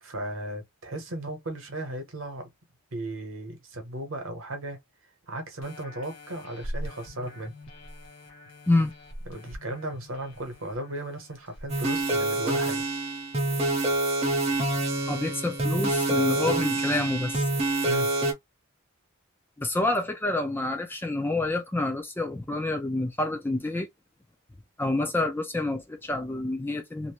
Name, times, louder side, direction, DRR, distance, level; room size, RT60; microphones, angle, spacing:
voice 1, 0.0-2.5 2.9-4.8 5.3-7.5 9.3-12.8 17.8-18.1, right 1 dB, 65° right, 1.0 m, -36 dB
sound 1, 5.6-12.8 13.3-13.4, equal, 60° left, 1.0 m, -43 dB
sound 2, 11.7-18.3, right 2 dB, 30° right, 0.7 m, -26 dB
voice 2, 15.1-17.5 19.6-23.9 24.8-27.1, left 2 dB, 10° left, 0.3 m, -28 dB
2.6 x 2.1 x 3.0 m
head